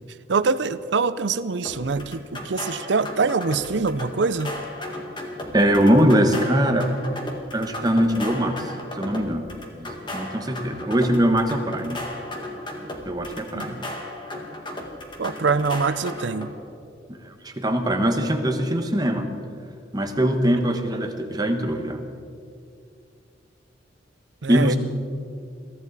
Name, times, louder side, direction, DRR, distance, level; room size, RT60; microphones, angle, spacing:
voice 1, 0.3-4.5 13.5-13.8 15.2-16.5 24.4-24.8, right 4 dB, 65° right, 15 dB, 0.6 m, -24 dB
sound 1, 1.6-16.5, left 1 dB, 25° left, 1.8 m, -35 dB
voice 2, 5.5-6.9 7.5-12.0 13.1-13.8 17.4-19.3 19.9-22.0 24.5-24.8, equal, 20° right, 5 dB, 1.2 m, -22 dB
22.5 x 14.0 x 4.1 m, 2.4 s
head